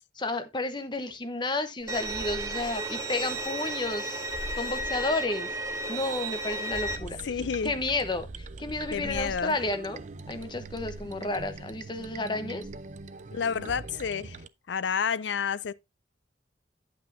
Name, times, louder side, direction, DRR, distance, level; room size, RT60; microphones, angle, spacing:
voice 1, 0.2-4.2 4.6-5.5 5.9-7.2 7.6-10.0 10.3-12.7, left 2 dB, 25° left, 1.0 m, -31 dB
sound 1, 1.8-9.6 10.2-12.4 12.6-13.8, right 1 dB, 5° left, 6.5 m, -45 dB
Bowed string instrument, 1.9-7.0, right 2 dB, 15° right, 1.0 m, -33 dB
sound 2, 6.8-14.5, right 3 dB, 40° right, 0.5 m, -43 dB
voice 2, 7.2-7.8 8.9-9.6 13.3-14.4 14.7-15.7, left 6 dB, 80° left, 0.5 m, -30 dB
9.5 x 8.5 x 2.6 m
head